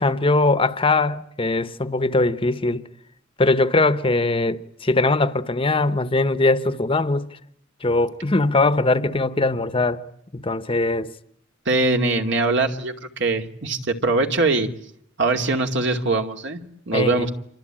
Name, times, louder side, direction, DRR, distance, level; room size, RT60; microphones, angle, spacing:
voice 1, 0.0-2.9 3.4-7.3 7.8-10.0 10.3-11.1 16.9-17.3, left 2 dB, 25° left, 1.1 m, -21 dB
voice 2, 11.7-14.7 15.2-16.6 16.9-17.3, right 3 dB, 60° right, 2.5 m, -22 dB
27.5 x 24.5 x 8.9 m
head